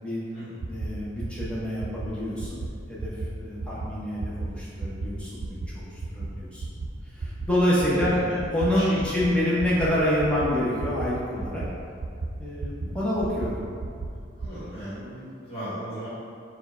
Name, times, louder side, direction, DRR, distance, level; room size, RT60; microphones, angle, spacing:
sound 1, 0.6-0.9 1.2-1.5 1.8-2.1 2.4-2.7 3.0-3.3 3.6-3.9 4.2-4.5 4.8-5.1 5.4-5.7 6.0-6.3 6.6-6.9 7.2-7.5 7.8-8.1 8.4-8.7 9.0-9.3 9.6-9.9 10.2-10.5 10.8-11.1 11.4-11.7 12.0-12.3 12.6-12.9 13.2-13.5 13.8-14.1 14.4-14.5, right 4 dB, 60° right, 0.4 m, -32 dB
voice 1, 0.7-2.6 2.9-6.6 7.1-8.2 8.5-11.7 12.4-13.6, left 1 dB, 5° left, -8 dB, 0.7 m, -27 dB
voice 2, 7.9-8.3 8.7-9.1 14.4-16.1, right 1 dB, 35° left, -13 dB, 1.3 m, -37 dB
4.4 x 2.3 x 4.2 m, 2.4 s
head